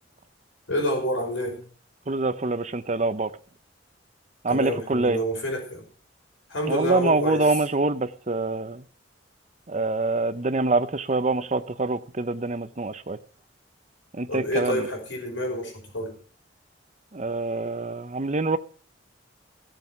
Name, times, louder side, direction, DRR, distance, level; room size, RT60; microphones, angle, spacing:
voice 1, 0.7-1.6 4.5-5.9 6.5-7.4 14.3-16.2, left 1 dB, 80° left, 5.5 m, -28 dB
voice 2, 2.1-3.3 4.4-5.2 6.7-8.8 9.7-13.2 14.1-14.9 17.1-18.6, right 3 dB, 40° right, 0.8 m, -25 dB
16.0 x 7.7 x 6.1 m
head